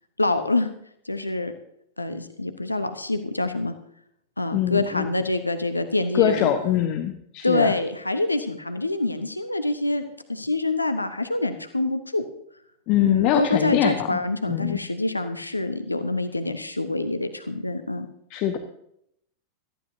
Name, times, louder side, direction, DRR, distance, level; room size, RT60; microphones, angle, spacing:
voice 1, 0.2-0.7 1.0-1.5 2.0-3.7 4.4-6.5 7.4-10.0 10.3-12.2 13.0-18.1, left 2 dB, 85° left, 9 dB, 0.9 m, -26 dB
voice 2, 4.5-5.1 6.1-7.7 12.9-14.2 14.5-14.8 18.3-18.6, left 11 dB, 40° left, 6 dB, 1.1 m, -23 dB
18.0 x 14.0 x 2.7 m, 0.73 s
figure-of-eight pair, 90°, 0 cm